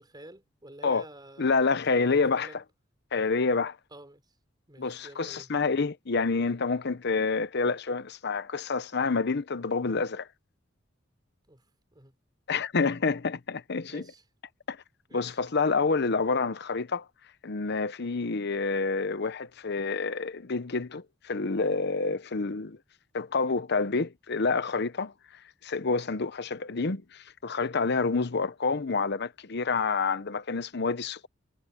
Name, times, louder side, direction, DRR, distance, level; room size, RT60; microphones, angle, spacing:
voice 1, 0.0-1.6 1.9-2.6 3.9-4.3 4.7-5.5 11.5-11.6 11.9-12.1 13.9-14.2 15.1-15.4, right 1 dB, 20° right, 3.5 m, -48 dB
voice 2, 1.4-2.5 3.1-3.8 4.8-10.3 12.5-14.0 14.7-14.8 15.1-17.1 17.4-22.8 23.1-25.1 25.6-31.3, left 4 dB, 60° left, 0.8 m, -28 dB
head